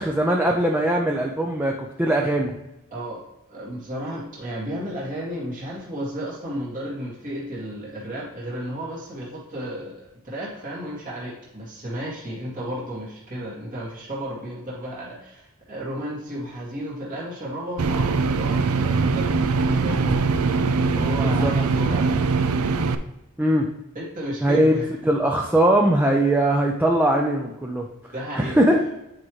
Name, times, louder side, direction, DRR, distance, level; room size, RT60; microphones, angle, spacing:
voice 1, 0.0-2.6 21.2-21.5 23.4-23.7 24.4-27.9 28.4-29.0, right 1 dB, 10° right, 0 dB, 0.5 m, -21 dB
voice 2, 3.5-22.2 23.9-24.9 28.1-28.6, equal, 35° right, -6 dB, 1.9 m, -33 dB
sound 1, 17.8-23.0, right 4 dB, 75° right, 0.5 m, -22 dB
8.6 x 4.8 x 3.1 m, 0.90 s
head